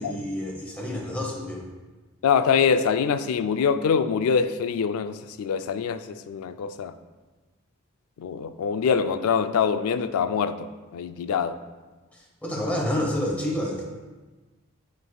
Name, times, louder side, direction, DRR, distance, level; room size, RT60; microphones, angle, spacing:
voice 1, 0.0-1.7 12.1-13.8, left 1 dB, 5° left, 0.9 m, -29 dB
voice 2, 2.2-6.9 8.2-11.6, left 6 dB, 85° left, 0.3 m, -24 dB
8.7 x 4.7 x 2.3 m
head